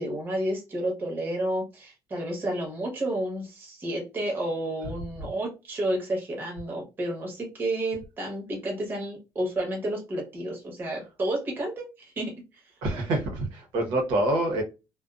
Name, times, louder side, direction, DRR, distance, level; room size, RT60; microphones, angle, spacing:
voice 1, 0.0-12.6, right 1 dB, 25° right, 1.0 m, -31 dB
voice 2, 12.8-14.6, right 1 dB, 85° right, 1.0 m, -26 dB
2.5 x 2.3 x 2.3 m
cardioid pair, 165°, 8 cm